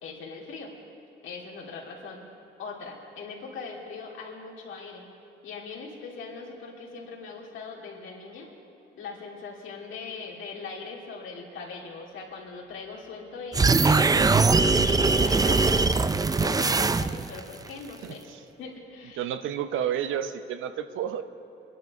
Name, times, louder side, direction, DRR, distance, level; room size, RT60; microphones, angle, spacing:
voice 1, 0.0-0.7 1.2-2.3 2.6-5.1 5.4-8.5 8.9-16.1 16.4-18.2 18.6-19.2, left 4 dB, 80° left, -2 dB, 2.9 m, -40 dB
sound 1, 13.5-17.4, right 4 dB, 20° right, 0.5 m, -21 dB
voice 2, 19.2-21.2, right 9 dB, 85° right, 10 dB, 0.8 m, -30 dB
23.0 x 11.0 x 4.8 m, 2.9 s
cardioid pair, 90°, 20 cm